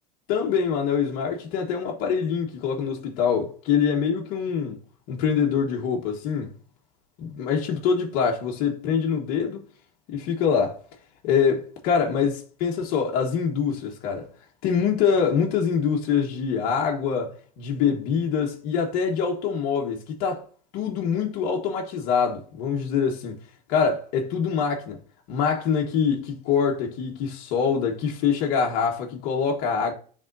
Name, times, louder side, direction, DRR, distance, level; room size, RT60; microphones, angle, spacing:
voice 1, 0.3-4.8 5.1-6.5 7.2-9.7 10.1-10.8 11.2-14.3 14.6-20.4 20.7-23.4 23.7-25.0 25.3-29.9, left 6 dB, 45° left, 1.3 m, -24 dB
10.5 x 3.6 x 2.6 m
supercardioid pair, 165°, 20 cm